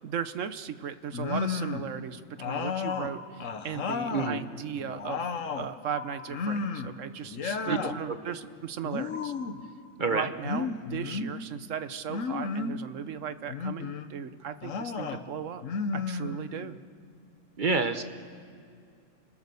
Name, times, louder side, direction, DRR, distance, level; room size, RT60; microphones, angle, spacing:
voice 1, 0.0-5.3 5.5-9.3 10.1-15.6 15.9-16.8, right 8 dB, 75° right, 11 dB, 1.3 m, -37 dB
sound 1, 1.1-1.9 2.4-4.4 4.8-5.7 6.3-7.0 7.3-8.0 8.8-9.6 10.4-11.3 12.1-12.8 13.5-14.1 14.6-15.2 15.6-16.7, left 5 dB, 80° left, 1.4 m, -33 dB
sound 2, 2.8-4.1 5.8-7.1 9.1-10.3, left 4 dB, 40° left, 2.1 m, -45 dB
voice 2, 4.1-4.4 7.6-7.9 10.0-10.3 17.6-18.0, right 4 dB, 40° right, 8 dB, 1.2 m, -27 dB
30.0 x 24.5 x 6.9 m, 2.3 s
omnidirectional pair, 1.3 m